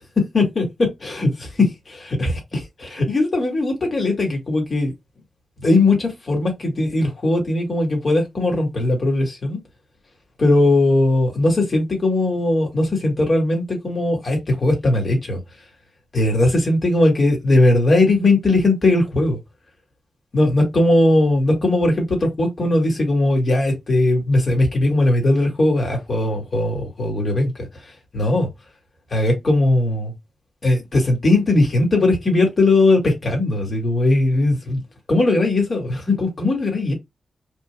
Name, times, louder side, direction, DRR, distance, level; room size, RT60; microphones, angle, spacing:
voice 1, 0.3-4.9 5.6-9.6 10.4-15.4 16.1-19.4 20.3-22.1 22.4-27.7 28.1-28.5 29.1-30.1 30.6-34.8 35.1-36.9, left 2 dB, 45° left, 2.3 m, -19 dB
4.9 x 3.8 x 2.2 m
wide cardioid pair, 115°, 0 cm